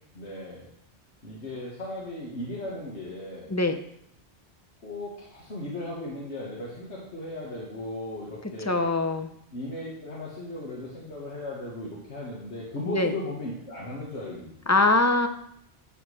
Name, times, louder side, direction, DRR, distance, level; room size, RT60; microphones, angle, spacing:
voice 1, 0.1-0.7 1.2-3.5 4.8-8.9 9.5-14.5, left 2 dB, 90° left, -5 dB, 1.8 m, -36 dB
voice 2, 8.7-9.3 12.9-13.1 14.7-15.3, left 2 dB, 20° left, 7 dB, 0.5 m, -22 dB
13.0 x 6.0 x 3.2 m, 0.72 s
omnidirectional pair, 1.1 m